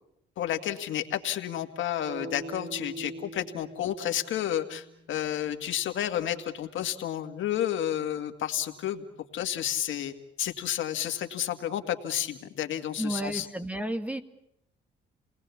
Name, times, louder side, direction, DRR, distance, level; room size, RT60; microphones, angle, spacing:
voice 1, 0.4-9.0 9.3-13.5, left 11 dB, 75° left, 6 dB, 2.0 m, -31 dB
sound 1, 2.1-6.1, right 2 dB, 80° right, 4.6 m, -44 dB
voice 2, 13.0-14.2, right 1 dB, 5° right, 9 dB, 1.9 m, -32 dB
29.5 x 19.5 x 7.2 m, 0.77 s
cardioid pair, 90°, 20 cm